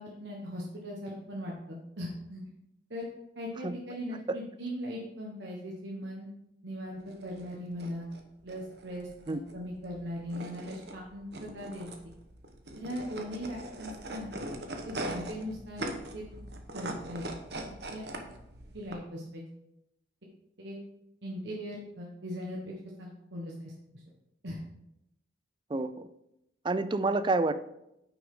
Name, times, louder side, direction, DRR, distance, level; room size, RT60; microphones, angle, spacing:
voice 1, 0.0-2.4 2.9-3.1 3.3-6.3 6.6-8.1 8.4-12.1 12.7-14.3 14.8-15.9 16.1-16.4 16.7-17.3 17.9-18.1 18.7-19.4 20.6-20.8 21.2-22.7 23.0-23.7 24.4-24.6, equal, 80° right, -2 dB, 1.3 m, -39 dB
sound 1, 7.0-18.9, right 1 dB, 65° right, 1.1 m, -41 dB
voice 2, 25.7-26.1 26.6-27.5, right 3 dB, 25° right, 12 dB, 0.4 m, -28 dB
9.7 x 6.0 x 3.7 m, 0.86 s
head